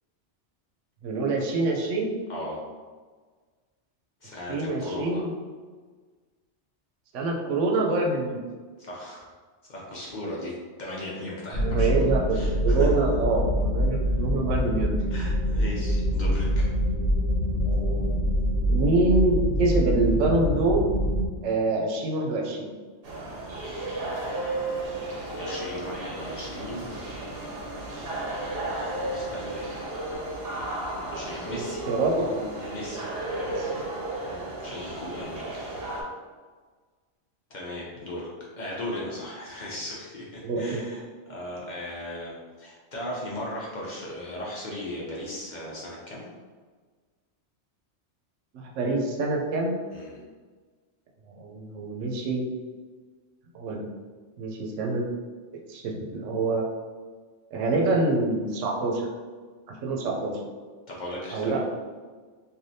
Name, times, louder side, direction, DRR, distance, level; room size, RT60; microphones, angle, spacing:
voice 1, 1.0-2.2 4.5-5.3 7.1-8.4 11.2-12.4 12.6-15.0 17.5-18.2 18.7-20.9 21.4-22.7 31.5-32.4 33.5-33.8 40.4-40.9 48.5-49.8 51.3-52.4 53.5-53.8 54.4-55.0 55.7-56.6 57.5-59.1 59.7-60.4 61.3-61.6, right 2 dB, 90° right, 0 dB, 0.9 m, -26 dB
voice 2, 2.3-2.6 4.2-5.2 8.8-9.3 9.7-12.9 15.1-16.7 25.4-26.9 29.1-30.1 31.1-31.8 32.7-33.0 34.2-35.5 37.5-46.3 49.9-50.2 60.9-61.6, left 1 dB, 50° left, -5 dB, 0.6 m, -37 dB
sound 1, 11.5-21.3, equal, 80° left, 1.0 m, -25 dB
sound 2, 23.0-36.0, right 2 dB, 60° right, 0.9 m, -34 dB
3.3 x 2.5 x 2.6 m, 1.5 s
omnidirectional pair, 1.2 m